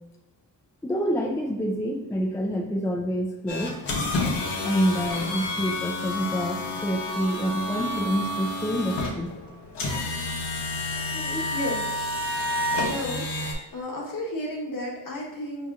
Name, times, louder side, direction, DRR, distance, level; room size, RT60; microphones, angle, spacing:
voice 1, 0.8-3.8 4.6-9.4 11.1-11.4, equal, 10° left, 0 dB, 0.3 m, -27 dB
sound 1, 3.5-13.5, left 2 dB, 75° left, 0.9 m, -29 dB
voice 2, 12.8-13.3 13.7-15.7, left 1 dB, 50° left, -2 dB, 1.1 m, -32 dB
4.8 x 2.8 x 2.4 m, 1.0 s
cardioid pair, 80°, 42 cm